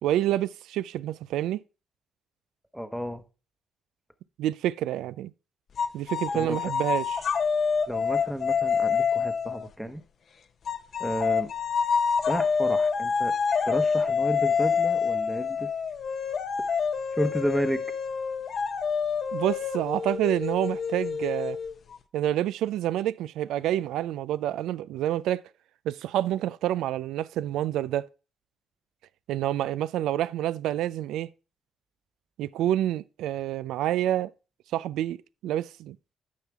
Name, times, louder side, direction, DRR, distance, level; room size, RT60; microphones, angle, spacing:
voice 1, 0.0-1.6 4.4-5.3 5.9-7.2 19.3-21.6 22.1-25.4 25.9-28.1 29.3-31.3 32.4-34.3 34.7-35.2 35.4-36.0, right 12 dB, 85° right, 0.3 m, -28 dB
voice 2, 2.7-3.2 6.3-6.6 7.9-10.0 11.0-11.5 12.3-13.3 13.6-15.7 16.6-16.7 17.1-17.8, equal, ahead, 0.9 m, -31 dB
sound 1, 5.8-9.7 10.7-22.0, left 6 dB, 55° left, 0.7 m, -27 dB
9.6 x 5.7 x 3.4 m
cardioid pair, 90°, 0 cm